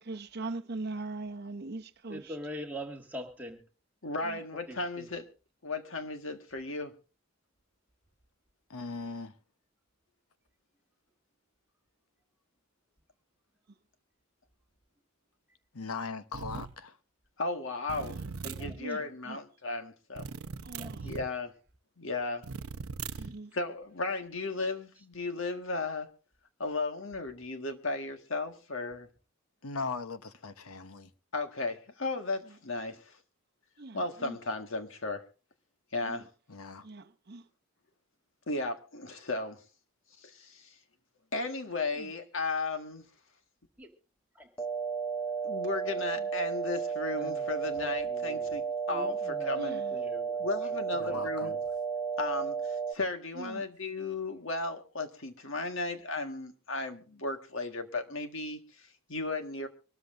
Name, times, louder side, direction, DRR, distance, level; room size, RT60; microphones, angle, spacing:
voice 1, 0.0-2.4 4.2-4.5 18.0-18.3 18.8-19.4 20.6-21.1 23.2-23.5 32.4-32.6 33.8-34.4 36.0-36.3 36.8-37.4 41.9-42.1 46.1-46.3 49.5-50.1 53.3-53.6, right 3 dB, 45° right, 0.8 m, -41 dB
voice 2, 2.1-3.6 4.7-5.1 18.0-19.1 20.8-21.1 43.8-43.9 44.4-44.5 47.2-48.6 48.9-50.5 51.1-51.6, equal, 10° right, 1.9 m, -44 dB
voice 3, 4.0-5.3 5.6-6.9 17.4-20.3 21.0-21.5 22.0-22.4 23.5-26.1 26.6-29.1 31.3-33.2 33.9-35.2 35.9-36.3 38.5-39.6 40.2-40.7 41.3-43.0 45.4-49.8 50.4-51.6 52.2-59.7, left 3 dB, 65° left, 1.6 m, -35 dB
voice 4, 8.7-9.3 15.7-17.0 29.6-31.1 36.5-36.9 51.0-51.6, left 4 dB, 85° left, 1.0 m, -39 dB
sound 1, 16.3-16.8 17.9-18.8 20.2-21.3 22.4-23.4, right 5 dB, 85° right, 0.6 m, -39 dB
sound 2, 44.6-52.9, right 6 dB, 10° left, 0.6 m, -33 dB
25.0 x 13.5 x 2.6 m
head